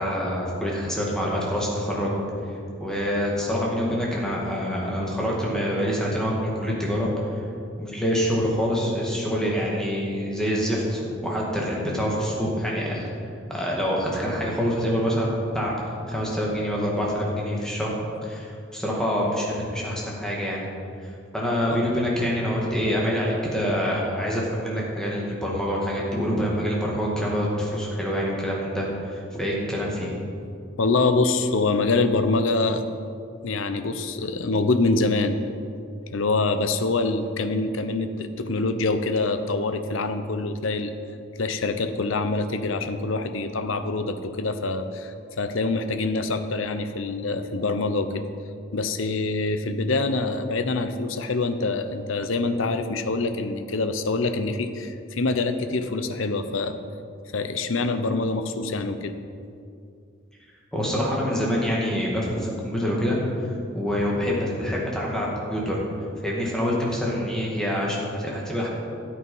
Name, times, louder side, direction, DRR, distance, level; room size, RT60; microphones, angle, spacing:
voice 1, 0.0-2.1 2.8-7.4 7.8-13.2 13.5-15.7 16.1-17.9 18.2-18.5 18.7-20.7 21.3-30.1 60.7-63.5 63.7-65.7 66.2-68.7, equal, 5° left, -4 dB, 2.2 m, -26 dB
voice 2, 30.8-32.9 33.4-35.4 36.1-40.9 41.4-48.2 48.7-56.8 57.3-59.1, left 3 dB, 75° left, 9 dB, 0.7 m, -25 dB
12.5 x 8.6 x 5.5 m, 2.4 s
head